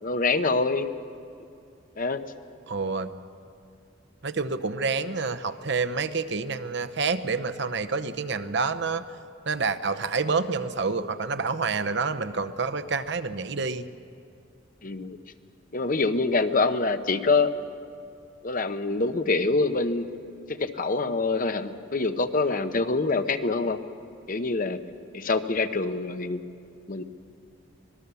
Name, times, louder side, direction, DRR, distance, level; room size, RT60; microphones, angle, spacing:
voice 1, 0.0-0.9 2.0-2.2 14.8-15.2 15.7-17.5 18.4-20.1 20.5-23.8 24.3-24.8 25.1-26.4 26.9-27.0, left 3 dB, 45° left, 9 dB, 0.9 m, -25 dB
voice 2, 2.7-3.1 4.2-9.0 9.5-13.8, right 4 dB, 60° right, 10 dB, 0.8 m, -28 dB
25.5 x 19.5 x 7.0 m, 2.5 s
head